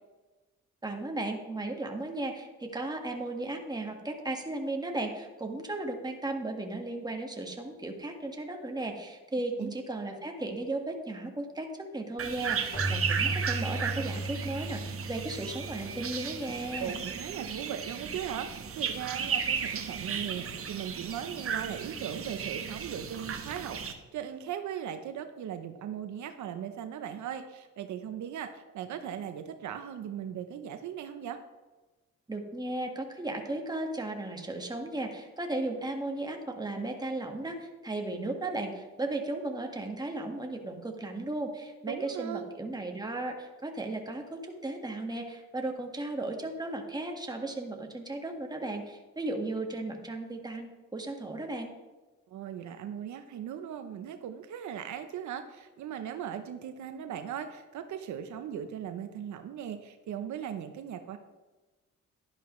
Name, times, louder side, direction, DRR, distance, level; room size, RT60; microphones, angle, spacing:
voice 1, 0.8-17.0 32.3-51.7, right 2 dB, 15° right, 2 dB, 1.7 m, -35 dB
sound 1, 12.2-23.9, right 7 dB, 50° right, 1.2 m, -35 dB
Keyboard (musical), 12.7-17.2, right 1 dB, 25° left, 2.8 m, -37 dB
voice 2, 16.8-31.4 41.9-42.5 52.3-61.2, right 9 dB, 70° right, 8 dB, 0.8 m, -38 dB
11.5 x 10.5 x 3.2 m, 1.2 s
cardioid pair, 90°, 30 cm